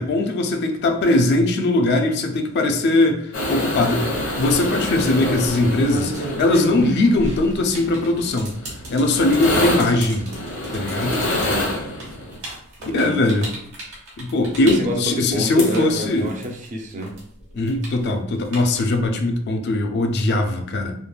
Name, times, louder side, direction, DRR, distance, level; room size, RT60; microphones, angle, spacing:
voice 1, 0.0-4.1 4.3-8.6 8.9-10.3 10.7-11.2 12.9-13.5 14.2-16.3 17.5-21.0, left 2 dB, 50° left, 4 dB, 0.3 m, -20 dB
sound 1, 3.3-12.4 15.3-15.4 15.6-16.0 16.4-16.5, left 1 dB, 85° left, 0.9 m, -27 dB
sound 2, 4.3-4.6 5.3-16.7 17.0-19.1, right 1 dB, 60° right, 1.0 m, -33 dB
voice 2, 5.0-5.4 9.5-9.8 11.2-11.8 12.8-13.2 14.6-17.1, equal, 35° right, 1 dB, 0.4 m, -28 dB
3.2 x 2.1 x 2.2 m, 0.68 s
head